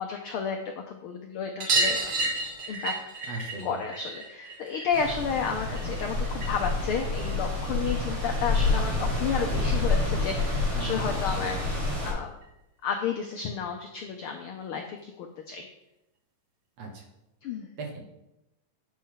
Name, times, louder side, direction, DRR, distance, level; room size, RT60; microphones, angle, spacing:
voice 1, 0.0-2.3 2.7-2.9 3.6-11.8 12.0-12.3 12.8-15.7 17.4-17.7, left 6 dB, 80° left, 4 dB, 1.2 m, -32 dB
sound 1, 1.6-6.7 7.0-8.1 9.5-9.6 9.8-9.9 10.2-10.3 11.6-11.7 12.0-12.1 12.4-12.5 13.7-13.8 14.6-14.7, right 2 dB, 45° right, 1.5 m, -31 dB
voice 2, 3.3-3.8 10.7-11.1 16.8-17.0 17.8-18.2, right 2 dB, 60° right, 1 dB, 2.5 m, -38 dB
sound 2, 4.9-12.1, left 2 dB, 25° right, 4.0 m, -28 dB
8.7 x 5.5 x 5.6 m, 0.91 s
omnidirectional pair, 3.3 m